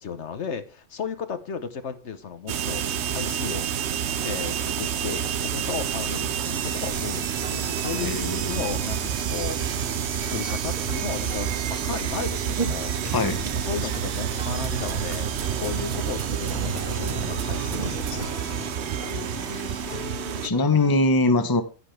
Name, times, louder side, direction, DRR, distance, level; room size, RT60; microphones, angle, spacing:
voice 1, 0.0-3.7 4.2-9.6 10.3-12.9 13.5-18.7, left 6 dB, 65° left, 10 dB, 1.3 m, -34 dB
sound 1, 2.5-20.5, right 9 dB, 65° right, 1.0 m, -29 dB
sound 2, 3.9-8.4 8.7-20.9, left 2 dB, 40° left, 1.9 m, -42 dB
sound 3, 6.9-18.3, right 2 dB, 35° right, 1.6 m, -38 dB
voice 2, 8.0-8.6 13.1-13.5 19.5-19.6 20.4-21.6, left 2 dB, 20° left, 9 dB, 0.9 m, -22 dB
10.5 x 9.8 x 3.3 m, 0.33 s
omnidirectional pair, 1.3 m